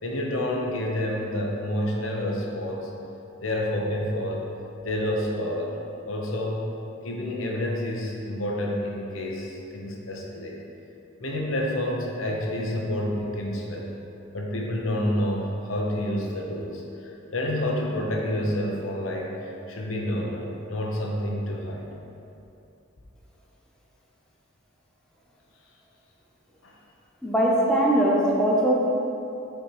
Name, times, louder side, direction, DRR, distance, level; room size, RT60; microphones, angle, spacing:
voice 1, 0.0-2.9 3.4-4.5 4.8-5.8 6.1-6.7 7.0-10.6 11.2-13.9 14.3-21.9 26.6-26.7, left 1 dB, 75° left, -1 dB, 0.9 m, -29 dB
voice 2, 27.2-28.9, right 1 dB, 5° left, -5 dB, 0.8 m, -21 dB
5.7 x 4.5 x 4.9 m, 2.8 s
head